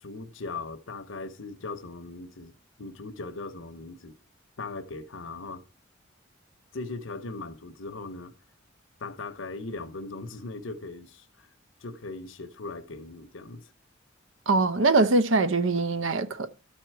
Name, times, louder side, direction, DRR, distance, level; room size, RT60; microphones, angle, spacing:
voice 1, 0.0-4.1 4.6-5.6 6.7-8.3 9.0-11.5 11.8-13.7, left 3 dB, 80° left, 0.9 m, -39 dB
voice 2, 14.5-16.5, right 3 dB, 80° right, 0.8 m, -23 dB
13.0 x 4.5 x 4.6 m
head